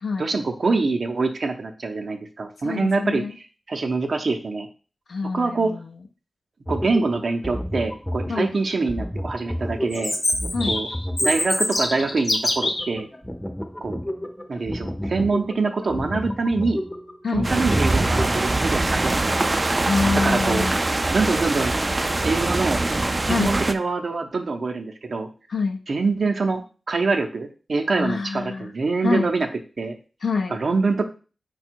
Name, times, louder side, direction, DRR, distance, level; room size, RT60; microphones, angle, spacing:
voice 1, 0.2-3.2 3.7-4.7 5.3-5.7 6.7-10.1 10.7-10.9 11.2-13.1 13.8-14.0 14.5-16.8 17.3-19.5 20.2-20.7 21.1-21.8 22.2-22.8 23.2-25.3 25.9-26.6 26.9-29.5 29.8-30.0 30.5-31.1, right 3 dB, 70° right, 4 dB, 0.6 m, -24 dB
voice 2, 2.6-3.3 5.1-6.0 8.3-8.6 10.5-10.8 17.2-17.5 19.9-20.8 23.3-23.6 25.5-25.8 28.0-28.7 29.0-29.3 30.2-30.6, left 4 dB, 85° left, 4 dB, 0.5 m, -26 dB
sound 1, 6.6-18.3, equal, 5° left, 0.6 m, -31 dB
Chirp tweet, 9.9-12.9, left 2 dB, 55° left, 0.8 m, -24 dB
sound 2, 17.4-23.7, right 2 dB, 35° right, 0.3 m, -23 dB
4.9 x 2.3 x 4.5 m, 0.36 s
cardioid pair, 60°, 0 cm